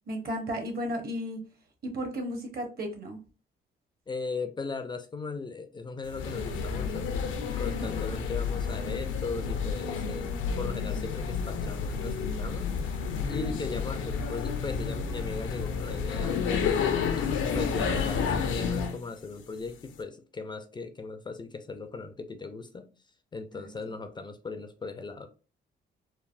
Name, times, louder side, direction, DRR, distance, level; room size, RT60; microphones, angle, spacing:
voice 1, 0.1-1.4 1.8-3.2 7.6-7.9 13.3-13.6 23.5-23.9, equal, 50° right, 0.9 m, -35 dB
voice 2, 4.1-7.1 7.6-12.7 13.3-22.9 23.3-25.3, left 4 dB, 25° left, 0.3 m, -38 dB
sound 1, 6.1-19.0, left 6 dB, 80° left, 0.5 m, -30 dB
3.3 x 2.0 x 2.4 m
cardioid pair, 90°, 20 cm